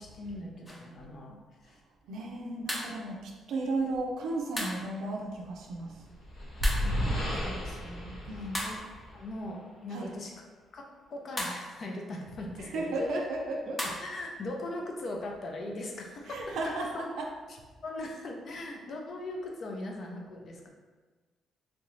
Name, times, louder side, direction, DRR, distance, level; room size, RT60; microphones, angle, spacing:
voice 1, 0.0-1.8 2.2-2.7 6.8-8.8 9.1-10.3 10.7-13.2 14.0-17.2 17.5-17.6 17.8-20.7, left 1 dB, 55° left, 1 dB, 0.6 m, -40 dB
sound 1, 0.6-0.9 2.7-3.0 4.6-4.9 6.6-7.0 8.5-9.0 11.4-11.7 13.8-14.1, equal, 15° left, 0.7 m, -35 dB
voice 2, 2.1-6.0 8.3-8.6 9.9-10.1 12.6-13.8 16.3-17.3, right 2 dB, 80° right, 0 dB, 0.4 m, -34 dB
sound 2, 5.8-9.4, equal, 80° left, 1.1 m, -32 dB
3.2 x 2.6 x 3.1 m, 1.3 s
cardioid pair, 90°, 0 cm